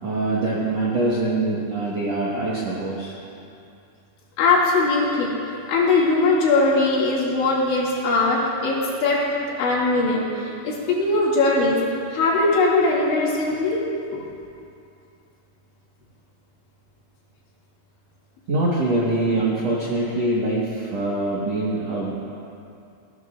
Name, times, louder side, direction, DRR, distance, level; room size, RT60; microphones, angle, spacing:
voice 1, 0.0-3.2 18.5-22.2, right 2 dB, 65° right, -6 dB, 1.7 m, -24 dB
voice 2, 4.4-5.3 5.7-9.2 9.6-11.8 12.1-13.8 14.1-14.2, left 3 dB, 80° left, -5 dB, 4.6 m, -20 dB
20.0 x 16.5 x 2.5 m, 2.6 s
omnidirectional pair, 5.3 m